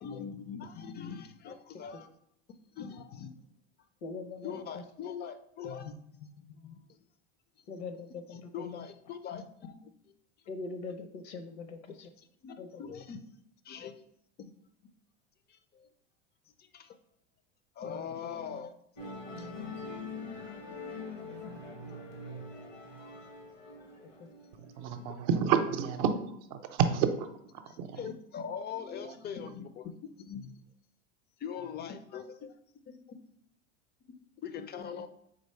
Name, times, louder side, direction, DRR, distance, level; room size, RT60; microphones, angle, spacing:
voice 1, 0.0-2.1 2.8-3.4 4.4-7.0 8.3-10.1 12.2-13.2 13.6-13.9 14.4-14.5 15.5-15.9 16.6-17.0 17.8-18.7 19.4-19.7 27.7-30.6 31.4-32.6 32.9-33.2 34.1-34.2 34.4-35.1, left 7 dB, 30° left, 10 dB, 0.5 m, -42 dB
voice 2, 4.0-4.8 7.7-8.6 10.5-12.1 12.6-12.8, left 3 dB, 65° left, 8 dB, 0.8 m, -42 dB
Musical instrument, 19.0-25.6, left 3 dB, 90° left, 1.4 m, -44 dB
voice 3, 24.6-27.3 27.8-28.0 29.0-29.1, right 7 dB, 55° right, 8 dB, 0.7 m, -29 dB
4.0 x 3.1 x 4.2 m, 0.73 s
hypercardioid pair, 90°, 36 cm